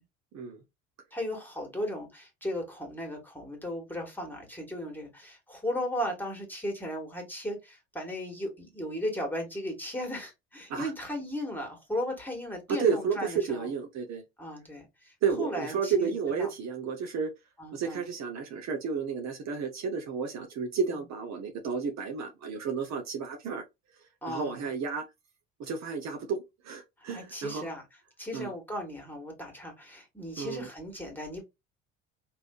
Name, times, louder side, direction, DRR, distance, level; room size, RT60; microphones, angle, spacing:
voice 1, 1.1-13.7 14.4-16.5 17.6-18.0 24.2-24.6 27.1-27.8 28.2-31.4, left 1 dB, 5° left, 1.7 m, -36 dB
voice 2, 12.7-14.2 15.2-17.3 17.7-23.6 24.3-25.0 25.6-27.7 28.3-28.5 30.4-30.7, right 6 dB, 50° right, 0.8 m, -32 dB
3.4 x 2.7 x 2.3 m
hypercardioid pair, 65°, 35 cm